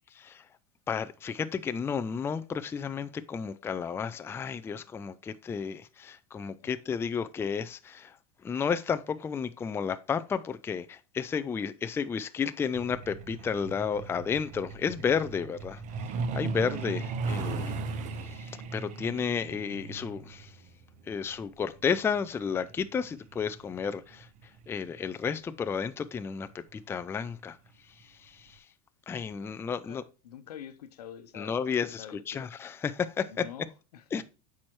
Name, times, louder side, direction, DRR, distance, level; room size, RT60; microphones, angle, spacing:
voice 1, 0.9-8.2 8.4-15.8 16.3-17.7 18.2-20.5 21.1-24.3 24.7-27.6 28.0-28.6 29.1-30.0 31.3-33.4 34.1-34.2, left 6 dB, 10° left, 0.4 m, -32 dB
voice 2, 6.6-7.0 29.4-32.5 33.3-34.2, left 9 dB, 85° left, 0.8 m, -47 dB
Truck, 12.8-25.1 26.3-26.5 26.8-27.0 27.4-27.7 28.0-28.1 28.6-28.7, right 4 dB, 40° right, 0.9 m, -37 dB
8.5 x 4.8 x 3.0 m
hypercardioid pair, 110°, 20 cm